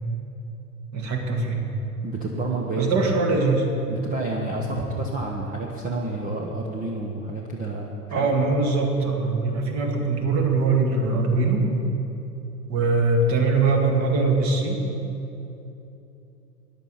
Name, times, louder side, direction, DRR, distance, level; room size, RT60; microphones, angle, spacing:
voice 1, 0.9-1.6 2.8-3.7 8.1-11.7 12.7-14.8, right 3 dB, 35° right, 2 dB, 2.4 m, -22 dB
voice 2, 2.0-3.3 3.9-8.3, right 2 dB, 15° right, -1 dB, 1.1 m, -30 dB
13.5 x 10.5 x 5.8 m, 3.0 s
hypercardioid pair, 100°, 48 cm